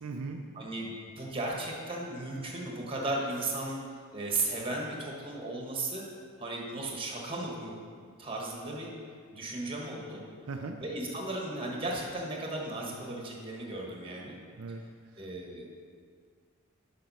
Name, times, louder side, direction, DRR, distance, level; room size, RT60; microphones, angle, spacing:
voice 1, 0.0-0.4 10.5-10.8 14.6-14.8, right 4 dB, 80° right, 3 dB, 0.5 m, -37 dB
voice 2, 0.5-3.8 4.1-6.0 6.4-7.7 8.2-8.9 9.3-10.2 10.8-14.3 15.2-15.6, right 2 dB, 25° right, -1 dB, 1.3 m, -35 dB
7.6 x 5.1 x 5.5 m, 2.1 s
head